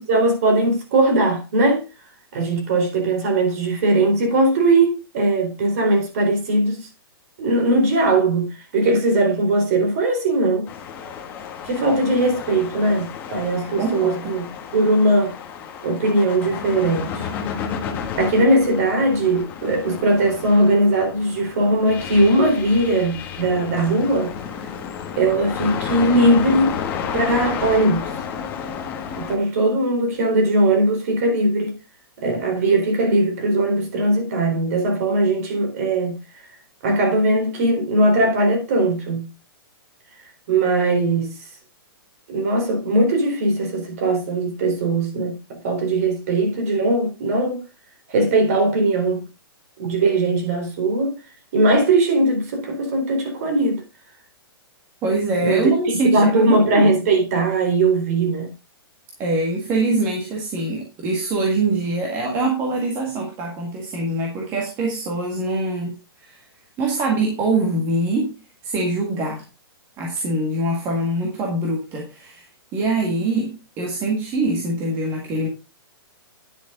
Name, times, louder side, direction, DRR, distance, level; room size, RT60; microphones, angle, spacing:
voice 1, 0.0-1.8 2.3-6.9 7.4-10.7 11.6-14.4 14.7-15.3 15.8-17.3 18.2-24.3 25.2-26.8 27.1-28.1 29.2-31.8 32.2-36.2 36.8-39.3 40.5-41.3 42.3-47.6 48.1-49.2 49.8-51.2 51.5-53.8 55.4-55.7 56.0-58.5, right 2 dB, 40° right, 4.1 m, -19 dB
sound 1, 10.6-29.4, left 7 dB, 15° left, 1.4 m, -32 dB
voice 2, 13.6-14.3 55.0-56.9 59.2-66.0 66.2-66.4 66.8-68.3 68.6-69.4 70.0-72.4 72.7-75.5, right 2 dB, 20° right, 1.9 m, -23 dB
10.5 x 8.1 x 3.8 m
hypercardioid pair, 175°, 13 cm